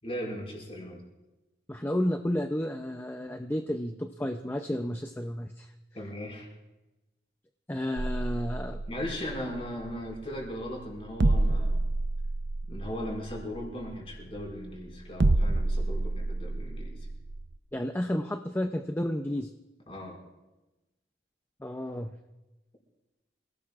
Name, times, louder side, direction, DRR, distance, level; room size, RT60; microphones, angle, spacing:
voice 1, 0.0-1.0 5.9-6.5 8.9-11.8 12.7-17.0 19.9-20.2, equal, 30° left, -1 dB, 5.3 m, -38 dB
voice 2, 1.7-5.7 7.7-8.8 17.7-19.5 21.6-22.1, left 1 dB, 10° left, 5 dB, 0.5 m, -31 dB
sound 1, 8.0-17.6, right 2 dB, 75° right, 0.7 m, -29 dB
27.0 x 17.5 x 2.5 m, 1.1 s
head